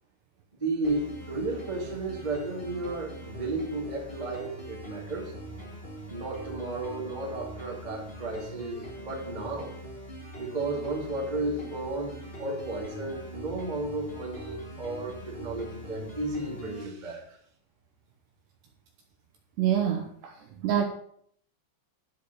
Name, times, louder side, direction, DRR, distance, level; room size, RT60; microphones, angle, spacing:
voice 1, 0.6-5.3 6.1-9.7 10.4-17.4, right 2 dB, 55° right, -3 dB, 0.4 m, -33 dB
sound 1, 0.8-16.8, right 1 dB, 55° left, 0.6 m, -43 dB
voice 2, 19.6-20.3 20.6-20.8, right 9 dB, 80° right, 2 dB, 2.5 m, -25 dB
12.5 x 4.5 x 6.8 m, 0.65 s
omnidirectional pair, 5.9 m